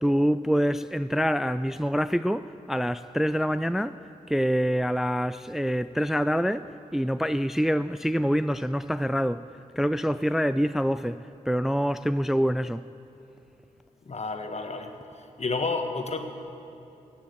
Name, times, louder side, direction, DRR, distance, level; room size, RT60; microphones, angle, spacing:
voice 1, 0.0-4.0 4.3-9.4 9.8-12.8, equal, ahead, 13 dB, 0.3 m, -26 dB
voice 2, 14.1-14.9 15.4-16.2, left 3 dB, 50° left, 6 dB, 1.6 m, -30 dB
15.5 x 9.6 x 8.1 m, 2.8 s
cardioid pair, 45°, 15 cm